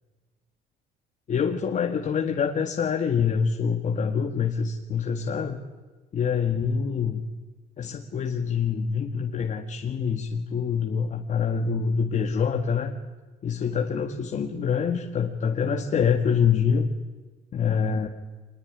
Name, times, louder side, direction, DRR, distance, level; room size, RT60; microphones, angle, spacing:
voice 1, 1.3-5.6 6.1-7.2 7.8-12.9 13.4-16.9 17.5-18.1, left 6 dB, 45° left, 4 dB, 2.0 m, -25 dB
25.0 x 21.0 x 9.9 m, 1.3 s
cardioid pair, 110°, 17 cm